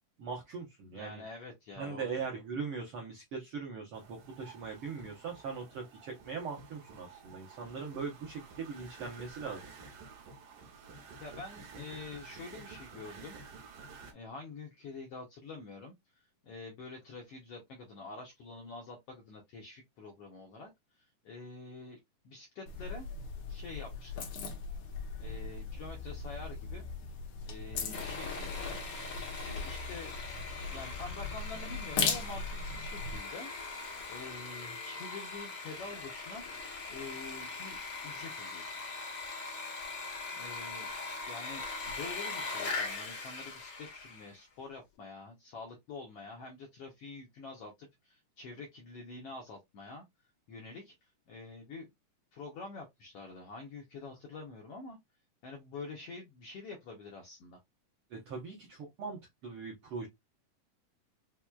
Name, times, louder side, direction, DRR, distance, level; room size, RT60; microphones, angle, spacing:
voice 1, 0.2-1.2 1.8-9.6 58.1-60.1, right 5 dB, 90° right, 1.2 m, -40 dB
voice 2, 0.9-2.1 11.2-13.4 13.7-13.8 14.1-20.7 20.9-22.0 22.2-23.1 23.5-24.3 25.2-26.8 27.4-28.8 29.4-30.1 30.7-36.4 36.9-38.8 40.3-40.9 41.3-50.0 50.5-51.9 52.3-55.0 55.4-57.6, left 3 dB, 80° left, 1.3 m, -47 dB
sound 1, 3.9-14.1, right 4 dB, 75° right, 2.5 m, -51 dB
sound 2, 22.7-33.2, left 5 dB, 65° left, 1.6 m, -39 dB
Sawing, 27.9-44.4, left 4 dB, 50° left, 1.6 m, -41 dB
5.8 x 2.2 x 2.3 m
omnidirectional pair, 3.7 m